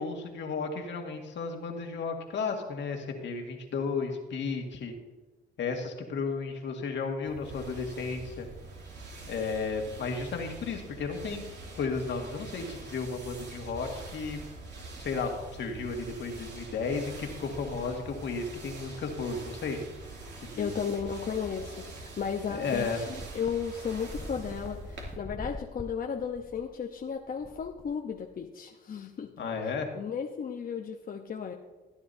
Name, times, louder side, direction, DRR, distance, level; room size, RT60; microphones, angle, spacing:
voice 1, 0.0-4.9 5.6-8.5 9.3-11.4 11.7-14.4 15.0-19.8 20.4-20.7 22.5-23.0 29.4-29.9, left 4 dB, 65° left, 3 dB, 1.9 m, -33 dB
sound 1, 7.2-25.2, right 2 dB, 60° right, 2.7 m, -44 dB
voice 2, 20.6-29.3 29.9-31.5, left 7 dB, 45° left, 2 dB, 0.9 m, -34 dB
sound 2, 23.2-28.4, left 2 dB, 10° left, 0.9 m, -44 dB
16.0 x 10.0 x 2.7 m, 1.2 s
cardioid pair, 90°, 20 cm